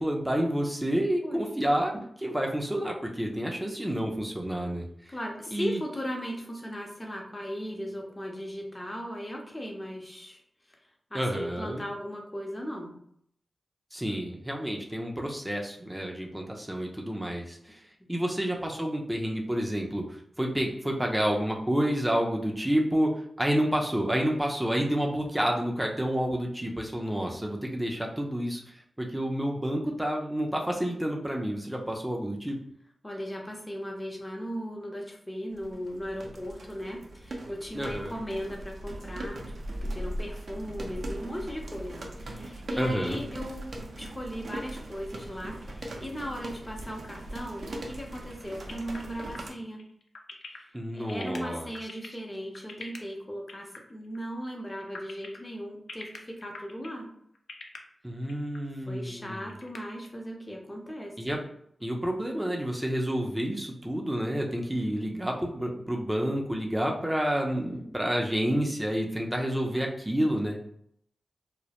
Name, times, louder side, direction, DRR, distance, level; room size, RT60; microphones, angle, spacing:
voice 1, 0.0-5.1 5.5-5.8 11.1-11.8 13.9-17.8 18.1-28.6 29.0-32.6 37.7-38.1 42.8-43.2 50.7-51.7 58.0-59.4 61.2-61.4 61.8-70.6, equal, 10° right, 0 dB, 0.5 m, -29 dB
voice 2, 5.1-10.4 11.1-13.0 18.0-18.4 33.0-39.4 39.8-49.8 50.5-57.1 58.9-61.4, equal, 25° left, 1 dB, 0.7 m, -37 dB
sound 1, 35.5-49.5, right 1 dB, 70° right, 0.4 m, -39 dB
sound 2, 48.7-53.0 53.5-53.8 54.0-54.2 54.6-55.4 55.9-57.0 57.3-57.8 58.3-58.6 58.9-59.0 59.3-60.1, left 4 dB, 75° left, 0.3 m, -43 dB
2.2 x 2.1 x 2.8 m, 0.69 s
cardioid pair, 40°, 0 cm